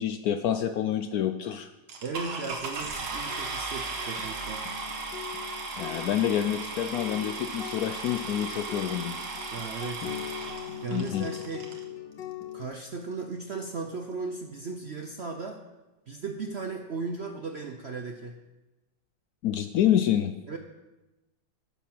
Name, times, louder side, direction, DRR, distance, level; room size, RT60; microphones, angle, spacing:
voice 1, 0.0-1.7 5.8-9.1 10.9-11.3 19.4-20.3, left 10 dB, 70° left, 8 dB, 0.9 m, -27 dB
sound 1, 1.9-11.8 12.6-12.7 13.2-13.3 13.5-13.8, right 3 dB, 80° right, 2.0 m, -36 dB
voice 2, 2.0-4.7 9.5-10.1 10.8-11.7 12.5-15.6 16.1-18.4 20.5-20.6, right 4 dB, 60° right, 4 dB, 0.7 m, -36 dB
sound 2, 2.8-12.7, left 11 dB, 90° left, 1.7 m, -41 dB
10.5 x 7.0 x 6.0 m, 1.1 s
omnidirectional pair, 1.9 m